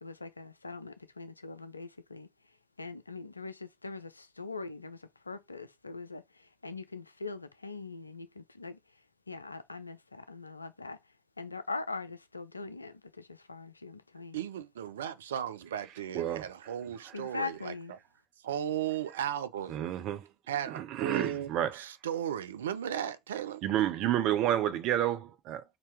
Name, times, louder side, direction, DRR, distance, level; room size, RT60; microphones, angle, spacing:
voice 1, 0.0-2.3 2.8-8.8 9.3-11.0 11.4-14.4 17.1-18.0, left 4 dB, 90° left, 0.3 m, -42 dB
voice 2, 14.3-17.7 18.4-19.9 20.5-23.6, right 10 dB, 75° right, 0.4 m, -36 dB
voice 3, 16.1-16.7 17.0-17.2 19.7-20.3 20.7-21.9 23.6-25.6, right 11 dB, 55° right, 0.7 m, -30 dB
4.0 x 2.7 x 4.6 m
figure-of-eight pair, 60°, 0 cm